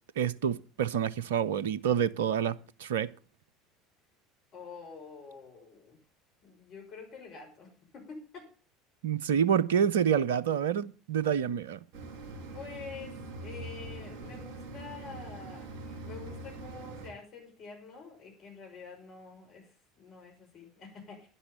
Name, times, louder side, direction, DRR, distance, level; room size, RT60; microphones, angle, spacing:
voice 1, 0.2-3.1 9.0-11.8, right 8 dB, 70° right, 0.6 m, -28 dB
voice 2, 4.5-6.0 6.4-8.5 12.5-21.3, left 4 dB, 45° left, 5.8 m, -47 dB
sound 1, 11.9-17.1, right 2 dB, 50° right, 5.6 m, -43 dB
11.0 x 10.5 x 6.9 m
figure-of-eight pair, 70°, 0 cm